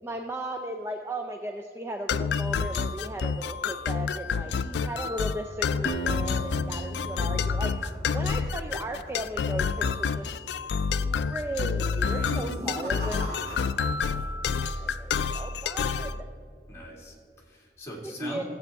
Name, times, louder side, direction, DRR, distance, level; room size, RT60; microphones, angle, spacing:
voice 1, 0.0-7.8 8.1-10.4 11.0-13.3 14.6-16.3 18.0-18.4, right 1 dB, 15° right, 4 dB, 0.4 m, -36 dB
sound 1, 2.1-16.2, left 5 dB, 75° left, 0.3 m, -28 dB
voice 2, 4.4-5.0 12.0-12.4 13.2-13.5 16.7-18.4, equal, 15° left, -3 dB, 1.9 m, -42 dB
Acoustic guitar, 5.8-8.9, right 1 dB, 45° left, 0.7 m, -36 dB
sound 2, 6.5-8.8 9.0-9.4 9.7-9.8 10.6-11.0 11.8-14.3 14.5-15.1, right 1 dB, 60° right, 2.4 m, -41 dB
15.0 x 7.9 x 3.5 m, 2.2 s
head